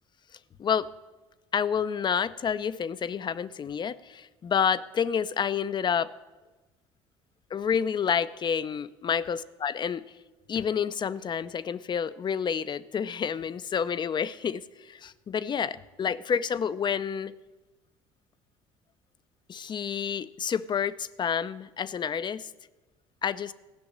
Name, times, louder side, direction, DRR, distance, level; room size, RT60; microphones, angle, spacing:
voice 1, 1.5-6.1 7.5-10.0 10.5-17.3 19.5-22.5 23.2-23.5, left 7 dB, 40° left, 15 dB, 0.6 m, -29 dB
14.5 x 6.3 x 9.6 m, 1.2 s
supercardioid pair, 75°, 12 cm